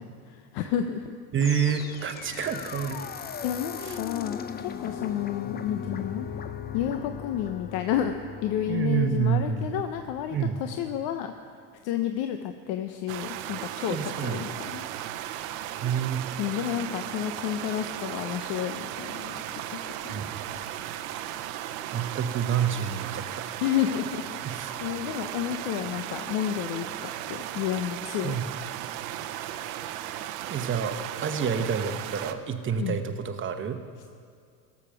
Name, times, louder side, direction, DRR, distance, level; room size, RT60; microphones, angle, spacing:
voice 1, 0.0-1.2 3.4-6.3 6.7-8.1 8.4-11.3 11.8-14.8 16.4-20.2 23.6-28.3 32.8-33.0, left 10 dB, 55° left, 7 dB, 0.8 m, -31 dB
sound 1, 1.3-10.5, left 7 dB, 20° left, 0.5 m, -38 dB
voice 2, 1.3-3.1 3.8-4.0 8.7-9.7 10.3-10.6 13.9-14.5 15.8-16.2 20.1-20.4 21.9-23.4 24.4-24.7 28.2-28.5 30.5-33.8, right 7 dB, 25° right, 7 dB, 1.0 m, -28 dB
sound 2, 13.1-32.3, right 12 dB, 65° right, 0.9 m, -36 dB
17.5 x 7.2 x 5.9 m, 2.3 s
hypercardioid pair, 100°, 46 cm